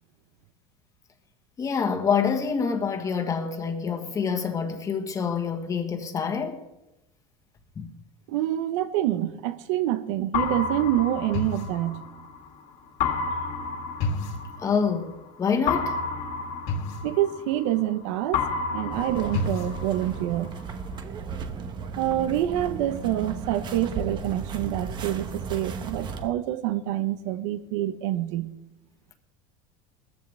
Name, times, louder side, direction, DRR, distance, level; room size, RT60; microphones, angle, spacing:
voice 1, 1.6-6.6 7.7-7.9 14.6-16.0, left 6 dB, 20° left, 1.5 m, -26 dB
voice 2, 8.3-12.0 17.0-20.5 22.0-28.5, right 13 dB, 80° right, 1.1 m, -27 dB
sound 1, 10.3-12.4 13.0-15.1 15.7-18.0 18.3-20.4, left 4 dB, 50° left, 2.0 m, -30 dB
sound 2, 18.9-26.3, right 5 dB, 30° right, 1.0 m, -35 dB
20.0 x 14.5 x 3.5 m
cardioid pair, 160°, 16 cm